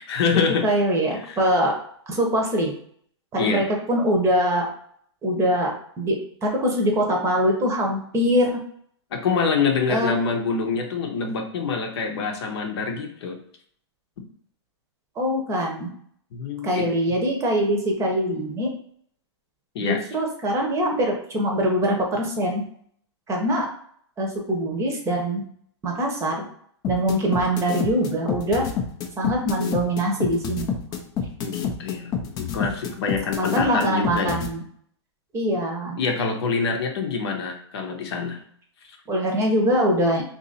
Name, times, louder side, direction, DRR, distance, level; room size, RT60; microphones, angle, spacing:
voice 1, 0.0-0.7 1.2-1.4 3.4-3.6 9.1-13.4 16.3-16.9 19.7-20.0 31.4-34.4 36.0-38.4, left 5 dB, 65° left, 3 dB, 0.8 m, -26 dB
voice 2, 0.6-1.7 2.1-2.7 3.3-4.7 5.2-5.7 6.0-8.6 9.9-10.1 15.2-15.9 16.6-18.7 19.8-22.6 23.3-23.7 24.2-25.4 25.8-26.4 26.9-28.7 29.2-30.7 33.3-34.6 35.3-36.0 39.1-40.2, equal, 20° right, 1 dB, 0.8 m, -23 dB
sound 1, 26.8-34.5, left 7 dB, 25° left, 0.5 m, -27 dB
2.8 x 2.6 x 3.9 m, 0.63 s
hypercardioid pair, 130°, 15 cm